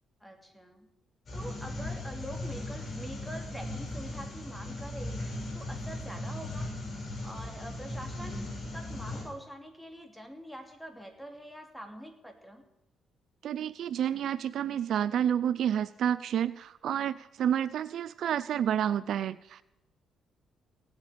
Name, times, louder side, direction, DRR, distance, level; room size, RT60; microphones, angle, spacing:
voice 1, 0.2-0.9 1.3-6.7 7.2-8.4 8.7-12.6, equal, ahead, 4 dB, 2.8 m, -45 dB
sound 1, 1.3-9.2, left 1 dB, 45° left, 7.0 m, -38 dB
voice 2, 13.4-19.6, right 9 dB, 70° right, 16 dB, 0.5 m, -29 dB
17.0 x 8.2 x 8.5 m, 0.88 s
cardioid pair, 90°, 0 cm